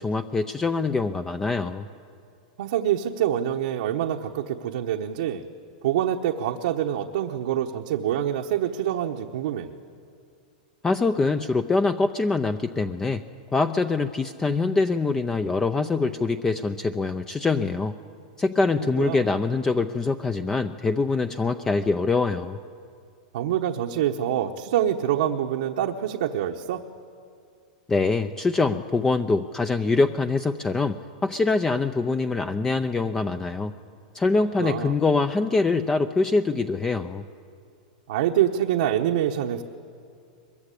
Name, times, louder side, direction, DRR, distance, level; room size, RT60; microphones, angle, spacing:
voice 1, 0.0-1.8 10.8-13.2 13.5-17.9 18.4-22.6 27.9-33.7 34.1-37.2, left 3 dB, 10° left, 9 dB, 0.6 m, -24 dB
voice 2, 2.6-5.4 5.8-9.7 18.8-19.2 23.3-26.8 34.6-34.9 38.1-39.6, right 10 dB, 70° right, 2 dB, 1.2 m, -26 dB
22.5 x 22.0 x 8.4 m, 2.4 s
supercardioid pair, 140°, 4 cm